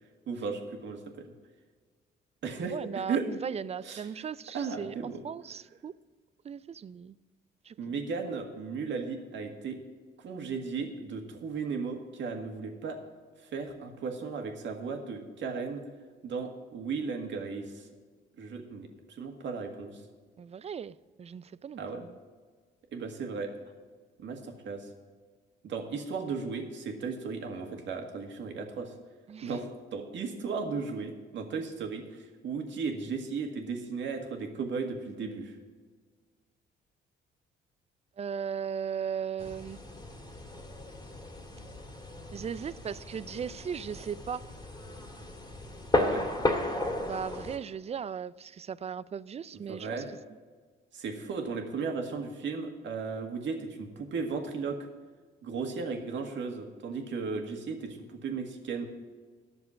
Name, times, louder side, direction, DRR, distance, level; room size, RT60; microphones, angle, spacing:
voice 1, 0.3-1.3 2.4-2.7 3.1-3.3 3.8-4.3 4.5-5.2 7.8-9.8 10.2-13.0 13.4-15.8 16.2-17.9 18.4-18.9 19.2-20.0 21.8-22.0 22.9-23.5 24.2-24.9 25.6-28.9 29.4-35.5 45.9-46.3 49.5-50.1 50.9-54.8 55.4-58.9, right 5 dB, 70° right, 1.8 m, -35 dB
voice 2, 2.6-5.9 6.4-7.2 7.6-8.0 20.4-22.2 29.3-29.6 38.2-39.8 42.3-44.5 47.0-50.0, right 7 dB, 30° right, 0.4 m, -37 dB
sound 1, 39.4-47.6, left 2 dB, 20° left, 2.0 m, -34 dB
11.0 x 6.8 x 7.5 m
cardioid pair, 90°, 20 cm